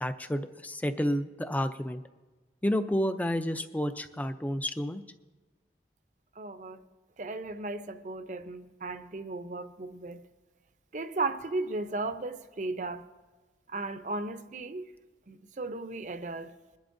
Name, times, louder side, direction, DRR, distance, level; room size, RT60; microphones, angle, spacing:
voice 1, 0.0-2.0 2.6-5.0, equal, 10° left, 0.4 m, -30 dB
voice 2, 6.4-6.8 7.2-10.3 10.9-13.1 13.7-14.9 15.3-16.6, right 2 dB, 45° right, 0.6 m, -35 dB
22.5 x 11.5 x 2.6 m
head